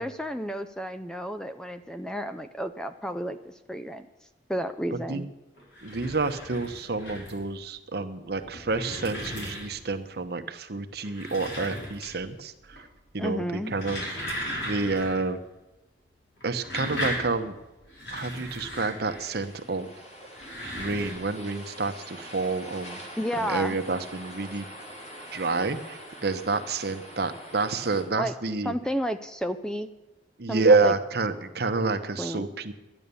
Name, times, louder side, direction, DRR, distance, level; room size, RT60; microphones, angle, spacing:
voice 1, 0.0-4.1 4.5-5.3 13.2-13.8 23.2-23.8 28.2-28.3 28.6-29.9 30.5-30.9 32.2-32.5, equal, 5° left, 9 dB, 0.4 m, -32 dB
voice 2, 4.9-5.2 5.8-12.9 13.1-14.0 14.3-15.4 16.4-17.6 18.1-19.9 20.7-23.0 23.4-24.7 25.3-28.7 30.4-32.7, right 3 dB, 60° right, 8 dB, 0.9 m, -28 dB
sound 1, 5.6-7.5 8.2-9.9 10.9-12.3 12.6-13.1 13.5-15.2 15.5-15.6 16.4-19.5 20.2-21.1, equal, 80° left, 5.6 m, -36 dB
sound 2, 18.9-28.0, equal, 35° left, 3.2 m, -44 dB
12.5 x 10.0 x 6.9 m, 1.1 s
head